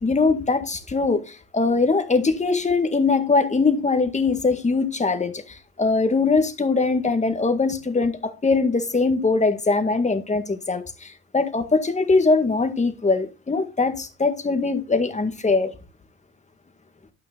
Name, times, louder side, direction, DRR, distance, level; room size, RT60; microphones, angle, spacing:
voice 1, 0.0-15.7, left 3 dB, 20° left, 1.9 m, -22 dB
12.5 x 5.4 x 3.9 m
hypercardioid pair, 70°, 34 cm